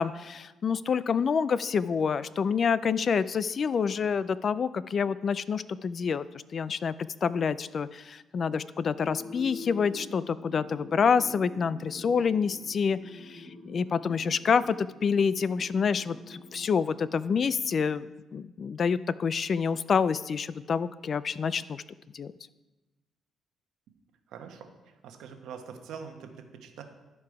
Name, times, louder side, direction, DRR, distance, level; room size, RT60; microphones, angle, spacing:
voice 1, 0.0-6.2 6.5-6.9 7.2-21.8 22.1-22.3, left 6 dB, 50° left, 16 dB, 0.3 m, -27 dB
sound 1, 8.9-17.7, left 2 dB, 25° left, 3.1 m, -46 dB
voice 2, 24.3-26.8, right 6 dB, 80° right, 5 dB, 1.0 m, -44 dB
12.0 x 4.7 x 4.8 m, 1.1 s
cardioid pair, 90°, 0 cm